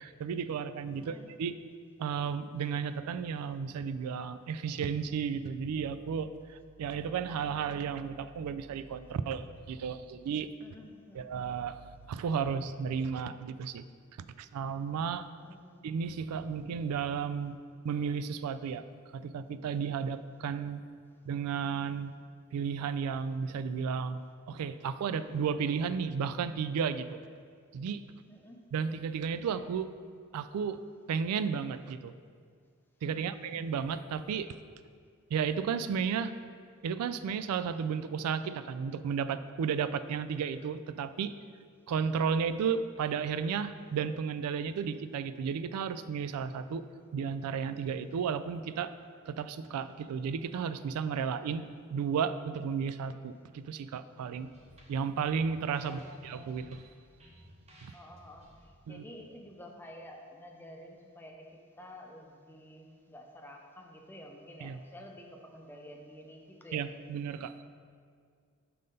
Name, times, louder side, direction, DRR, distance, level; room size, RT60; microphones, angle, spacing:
voice 1, 0.0-1.6 2.0-10.5 11.1-13.8 14.4-15.3 15.8-17.6 17.8-18.8 19.1-20.8 21.3-22.1 22.5-24.2 24.5-27.2 27.7-28.0 28.7-29.9 30.3-30.8 31.1-32.1 33.0-34.6 35.3-36.3 36.8-41.3 41.9-46.8 47.1-48.9 49.3-54.5 54.9-56.9 57.8-57.9 58.9-59.0 64.6-64.8 66.7-67.5, right 6 dB, 90° right, 13 dB, 0.3 m, -33 dB
voice 2, 1.0-1.3 10.6-11.5 15.4-15.8 28.3-28.6 33.1-33.4 55.8-56.6 57.9-66.9, equal, 10° left, 1 dB, 0.6 m, -50 dB
sound 1, 54.3-59.9, equal, 30° right, 0.8 m, -58 dB
5.6 x 4.0 x 5.2 m, 2.1 s
head